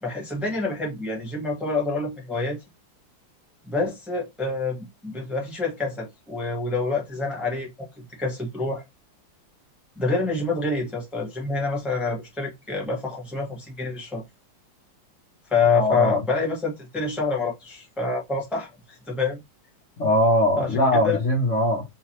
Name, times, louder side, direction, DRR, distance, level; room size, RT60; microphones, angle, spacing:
voice 1, 0.0-2.6 3.6-8.8 9.9-14.2 15.5-19.4 20.6-21.2, left 3 dB, ahead, 1.0 m, -27 dB
voice 2, 15.7-16.2 20.0-21.8, equal, 50° left, 1.0 m, -21 dB
3.9 x 2.3 x 3.0 m
omnidirectional pair, 2.1 m